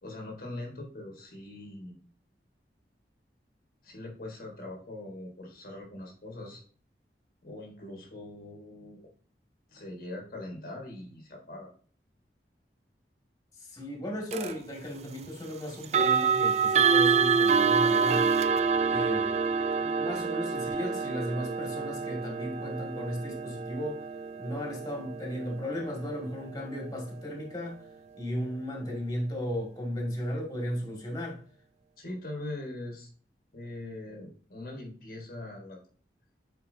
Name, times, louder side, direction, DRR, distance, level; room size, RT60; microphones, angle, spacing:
voice 1, 0.0-2.0 3.8-6.6 7.4-9.1 9.7-11.7 32.0-33.1 33.5-35.8, left 1 dB, 55° left, 1.4 m, -42 dB
voice 2, 13.6-18.3 18.9-19.4 19.8-24.0 24.4-27.8 28.2-31.4, equal, 20° left, 1.9 m, -35 dB
sound 1, 14.3-14.5 15.8-26.7, right 5 dB, 40° right, 0.3 m, -27 dB
8.2 x 4.4 x 2.7 m
head